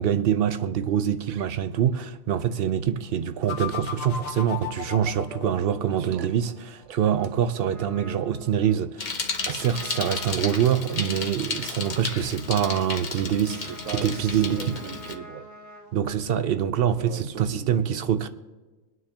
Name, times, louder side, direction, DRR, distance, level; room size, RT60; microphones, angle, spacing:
voice 1, 0.0-9.2 9.5-13.6 13.9-14.8 15.9-18.3, right 9 dB, 60° right, 0.6 m, -25 dB
sound 1, 3.5-6.4, left 7 dB, 75° left, 1.4 m, -35 dB
voice 2, 5.9-6.3 6.9-7.0 13.5-15.5 17.0-17.9, right 8 dB, 80° right, 1.1 m, -39 dB
Trumpet, 7.0-15.9, equal, 10° right, 2.1 m, -47 dB
Bicycle, 9.0-15.2, left 4 dB, 40° left, 0.8 m, -33 dB
24.5 x 9.4 x 2.9 m
omnidirectional pair, 1.4 m